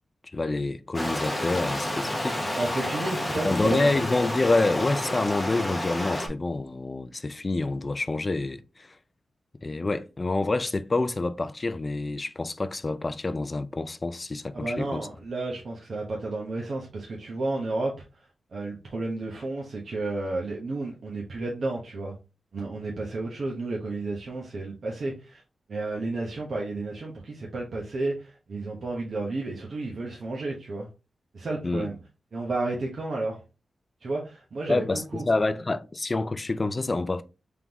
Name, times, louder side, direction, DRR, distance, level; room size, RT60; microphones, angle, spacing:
voice 1, 0.3-2.6 3.4-8.9 9.6-15.1 31.6-31.9 34.7-37.2, left 2 dB, 25° left, 0.4 m, -27 dB
Stream, 0.9-6.3, left 1 dB, 10° left, 1.0 m, -30 dB
voice 2, 2.6-3.9 14.5-17.9 18.5-22.1 22.5-25.4 25.7-30.9 31.3-32.0 32.3-33.4 34.0-35.2, right 2 dB, 55° right, 1.0 m, -32 dB
3.7 x 3.6 x 2.9 m
wide cardioid pair, 135°, 0 cm